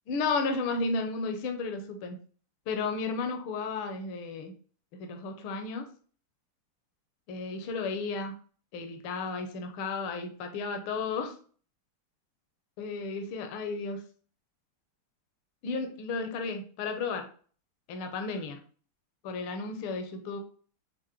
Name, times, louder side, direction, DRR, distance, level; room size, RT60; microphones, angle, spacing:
voice 1, 0.1-2.2 2.7-4.5 4.9-5.9 7.3-8.3 8.7-11.3 12.8-14.0 15.6-17.3 17.9-18.6 19.2-20.4, left 4 dB, 75° left, 6 dB, 1.5 m, -33 dB
6.1 x 2.6 x 3.0 m, 0.43 s
omnidirectional pair, 2.4 m